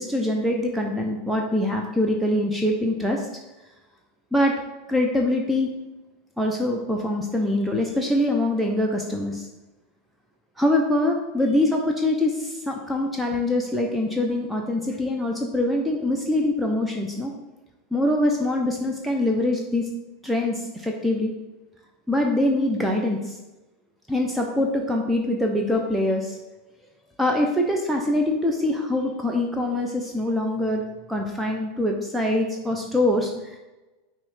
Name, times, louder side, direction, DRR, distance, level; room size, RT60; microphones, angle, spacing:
voice 1, 0.0-3.3 4.3-4.5 4.9-5.7 6.4-9.5 10.6-17.3 17.9-19.9 20.2-21.3 22.1-23.4 24.1-26.4 27.2-33.6, left 1 dB, 5° right, 0 dB, 0.8 m, -24 dB
5.8 x 3.2 x 5.6 m, 1.1 s
figure-of-eight pair, 85°, 0 cm